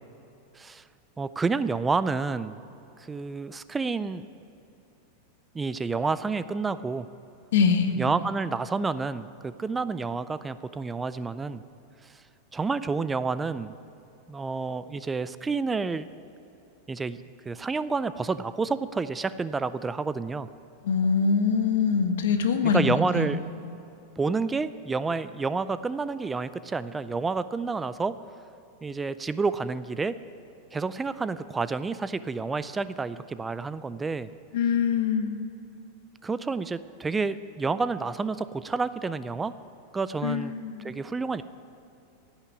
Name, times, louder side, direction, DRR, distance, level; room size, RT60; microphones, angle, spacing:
voice 1, 1.2-2.6 3.1-4.2 5.5-7.1 8.0-11.6 12.5-13.7 14.3-16.1 16.9-17.2 17.5-20.5 22.6-23.4 24.2-28.2 28.8-30.2 30.7-34.3 36.2-39.6 39.9-40.5 40.8-41.4, right 4 dB, 10° right, 14 dB, 0.3 m, -29 dB
voice 2, 7.5-7.9 20.8-23.4 34.5-35.4 40.2-40.9, left 6 dB, 85° left, 6 dB, 1.5 m, -24 dB
16.5 x 5.9 x 9.7 m, 2.9 s
supercardioid pair, 160°, 0 cm